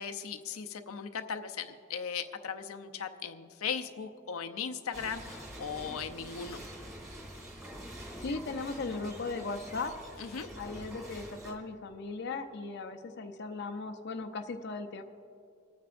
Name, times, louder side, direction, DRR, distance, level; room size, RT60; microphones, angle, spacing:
voice 1, 0.0-6.6 10.2-10.5, left 6 dB, 90° left, 6 dB, 0.6 m, -38 dB
Debris Sifting wet, 4.9-11.5, equal, 15° right, 2.3 m, -46 dB
voice 2, 8.2-9.9 10.6-15.0, left 3 dB, 50° left, 6 dB, 0.5 m, -37 dB
25.5 x 9.3 x 2.5 m, 2.5 s
head